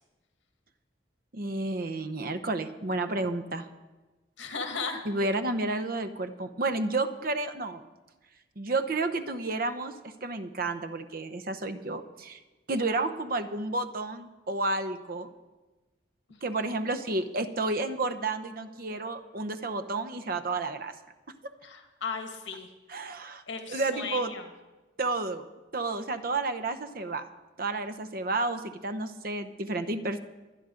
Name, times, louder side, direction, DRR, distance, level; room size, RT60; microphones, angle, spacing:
voice 1, 1.3-3.7 5.0-7.8 8.6-12.4 12.7-15.3 16.4-20.9 22.9-23.4 23.7-24.3 25.0-25.5 25.7-27.3 27.6-30.2, right 2 dB, 50° right, 10 dB, 0.8 m, -31 dB
voice 2, 4.4-5.0 16.3-16.7 21.6-22.7 23.5-24.5, left 5 dB, 75° left, 5 dB, 1.8 m, -36 dB
24.0 x 10.0 x 3.8 m, 1.2 s
head